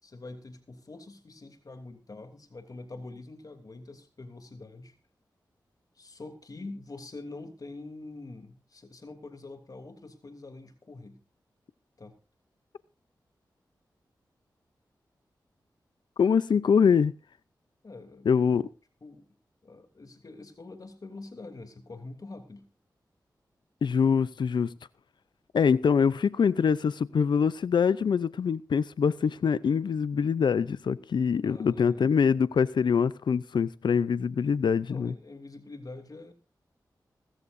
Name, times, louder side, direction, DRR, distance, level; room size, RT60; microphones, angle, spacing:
voice 1, 0.0-4.9 5.9-11.2 12.0-12.2 17.8-18.3 19.0-19.3 19.6-22.7 31.4-32.1 34.8-36.3, left 2 dB, 55° left, 3.0 m, -45 dB
voice 2, 16.2-17.1 18.2-18.7 23.8-24.7 25.5-35.1, left 6 dB, 85° left, 0.6 m, -24 dB
20.5 x 14.0 x 2.7 m
cardioid pair, 60°, 8 cm